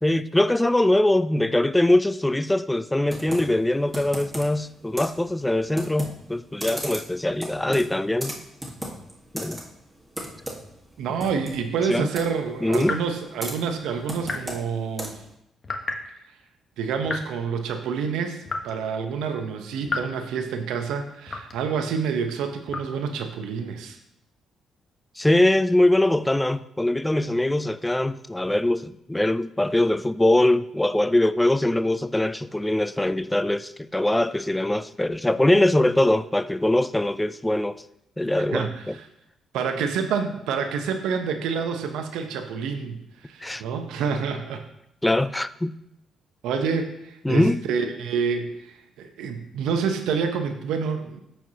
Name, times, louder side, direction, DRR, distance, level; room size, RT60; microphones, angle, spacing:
voice 1, 0.0-8.3 9.3-9.6 11.9-12.1 12.6-13.0 25.2-37.8 38.2-39.0 43.4-43.6 45.0-45.7 47.2-47.6, left 1 dB, 10° left, 0.3 m, -22 dB
Computer keyboard, 3.1-15.4, right 1 dB, 10° right, 1.6 m, -38 dB
voice 2, 11.0-15.2 16.8-24.0 38.5-39.0 39.5-43.0 43.2-44.6 46.4-51.2, right 6 dB, 90° right, 0.8 m, -28 dB
sound 1, 12.8-13.0 14.2-14.6 15.6-16.1 17.0-17.3 18.5-18.8 19.9-20.1 21.3-21.7 22.7-22.9, left 3 dB, 35° left, 1.0 m, -31 dB
13.5 x 4.5 x 2.8 m
cardioid pair, 90°, 0 cm